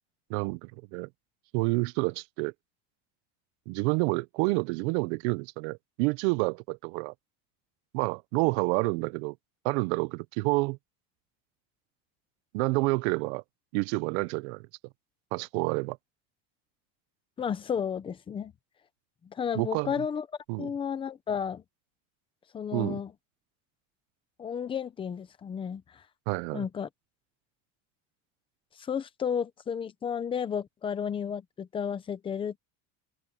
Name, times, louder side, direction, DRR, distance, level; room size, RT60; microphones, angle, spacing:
voice 1, 0.3-1.1 1.5-2.5 3.7-7.1 7.9-9.4 9.6-10.8 12.5-13.4 13.7-14.7 15.3-16.0 19.5-19.9 20.5-20.7 22.7-23.0 26.3-26.7, right 25 dB, 60° right, 0.6 m, -28 dB
voice 2, 17.4-18.5 19.2-20.3 20.6-21.6 22.5-23.1 24.4-26.0 26.5-26.9 28.8-32.6, left 7 dB, 15° left, 0.7 m, -32 dB
open air
cardioid pair, 175°, 39 cm